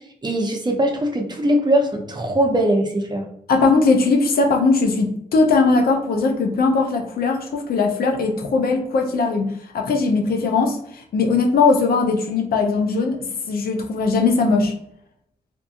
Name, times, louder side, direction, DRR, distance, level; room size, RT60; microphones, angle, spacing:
voice 1, 0.2-3.2, right 1 dB, 30° right, 2 dB, 0.7 m, -20 dB
voice 2, 3.5-14.7, left 4 dB, 75° left, 3 dB, 0.5 m, -19 dB
2.6 x 2.5 x 2.5 m, 0.71 s
cardioid pair, 55°, 16 cm